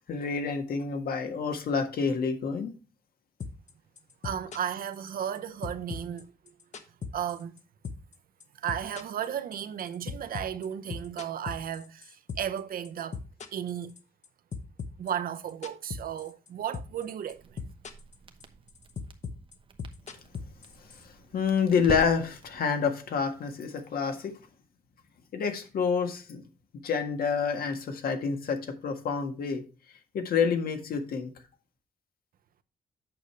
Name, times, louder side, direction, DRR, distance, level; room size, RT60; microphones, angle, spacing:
voice 1, 0.1-2.7 21.0-24.3 25.3-26.4 26.8-29.6 30.1-31.3, left 6 dB, 75° left, 1.7 m, -28 dB
sound 1, 3.4-3.7 4.0-5.4 5.6-7.6 7.8-8.1 8.4-12.6 12.8-14.3 14.5-16.5 16.7-17.0 17.3-18.1 18.4-21.0, left 5 dB, 50° left, 1.0 m, -38 dB
voice 2, 4.2-6.3 7.1-7.6 8.5-13.2 13.5-13.9 15.0-17.7, right 9 dB, 70° right, 0.7 m, -34 dB
Crackle, 17.3-22.6, right 4 dB, 35° right, 1.0 m, -45 dB
8.8 x 6.5 x 3.2 m
wide cardioid pair, 165°, 15 cm